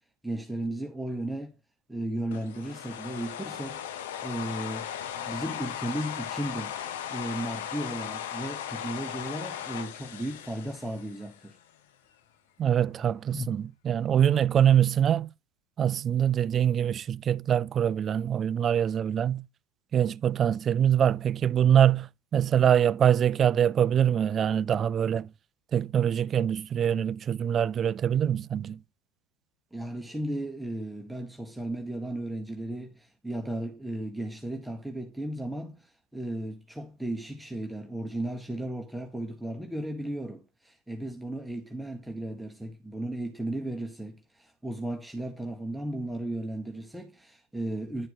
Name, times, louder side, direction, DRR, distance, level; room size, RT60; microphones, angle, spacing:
voice 1, 0.2-1.6 1.9-3.8 4.2-4.9 5.1-11.6 13.3-13.5 29.7-48.1, right 1 dB, 5° right, 1.1 m, -35 dB
sound 1, 2.3-11.5, left 10 dB, 80° left, 0.6 m, -37 dB
voice 2, 12.6-15.3 15.8-19.5 19.9-25.3 25.7-28.8, right 9 dB, 40° right, 0.3 m, -24 dB
9.8 x 4.3 x 4.0 m
hypercardioid pair, 85°, 0 cm